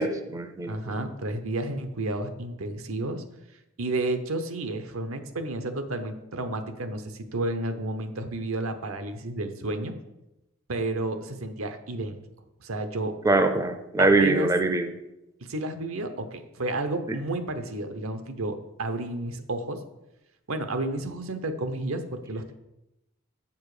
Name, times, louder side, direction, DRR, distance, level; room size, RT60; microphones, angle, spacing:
voice 1, 0.0-0.8 13.2-14.9 17.1-17.2, right 2 dB, 15° right, 8 dB, 0.4 m, -23 dB
voice 2, 0.7-3.2 3.8-9.9 10.7-12.2 12.6-13.1 14.0-14.5 15.5-19.8 20.5-22.5, right 2 dB, 85° right, 8 dB, 0.9 m, -31 dB
7.1 x 7.0 x 4.9 m, 0.93 s
head